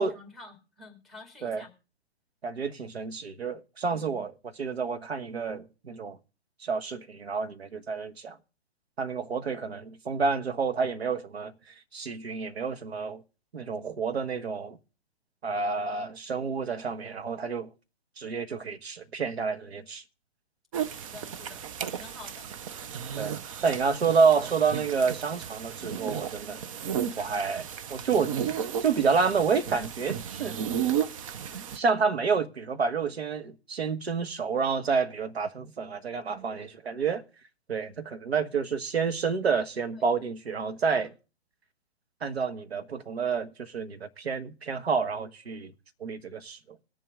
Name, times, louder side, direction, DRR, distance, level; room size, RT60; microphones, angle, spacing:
voice 1, 0.0-1.7 3.9-4.2 20.9-22.5 27.0-27.4 39.9-40.1 40.9-41.1, left 3 dB, ahead, 2.3 m, -50 dB
voice 2, 2.4-6.2 6.6-8.4 9.0-11.5 11.9-13.2 13.5-14.8 15.4-17.7 18.2-20.0 23.2-23.3 23.6-26.6 27.2-27.6 27.9-28.4 28.8-30.6 31.7-37.2 37.7-41.1 42.2-45.7 46.0-46.6, right 5 dB, 70° right, 1.5 m, -29 dB
sound 1, 20.7-31.8, right 8 dB, 30° right, 0.6 m, -34 dB
20.5 x 7.2 x 3.7 m
hypercardioid pair, 135°, 32 cm